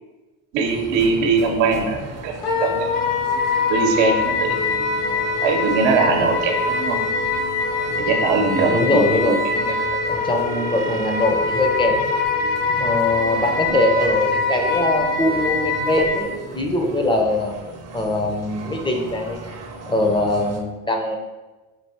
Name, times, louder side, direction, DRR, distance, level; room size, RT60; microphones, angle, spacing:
voice 1, 0.5-2.9 3.7-4.5 5.4-7.0 8.0-9.0 9.3-9.4 9.6-9.7, right 4 dB, 90° right, 3 dB, 0.9 m, -21 dB
sound 1, 0.6-20.6, right 2 dB, 35° right, 0.6 m, -36 dB
Wind instrument woodwind instrument, 2.4-16.2, left 3 dB, 65° left, 0.9 m, -23 dB
sound 2, 4.5-12.3, left 5 dB, 85° left, 1.3 m, -32 dB
voice 2, 6.0-6.3 8.6-9.4 10.1-11.9 12.8-16.3 16.5-17.5 17.9-19.4 19.9-21.2, left 1 dB, 10° left, 2 dB, 0.4 m, -22 dB
4.6 x 2.7 x 4.2 m, 1.2 s
cardioid pair, 130°, 43 cm